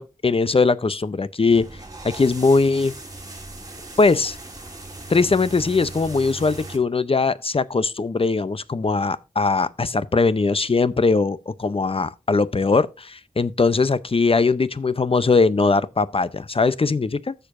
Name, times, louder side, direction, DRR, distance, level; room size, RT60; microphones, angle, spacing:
voice 1, 0.0-1.7 2.0-3.0 4.0-4.4 5.1-17.3, left 4 dB, 45° left, 0.6 m, -20 dB
sound 1, 1.5-6.8, right 2 dB, 25° right, 2.7 m, -38 dB
15.0 x 6.8 x 2.6 m
wide cardioid pair, 60°, 14 cm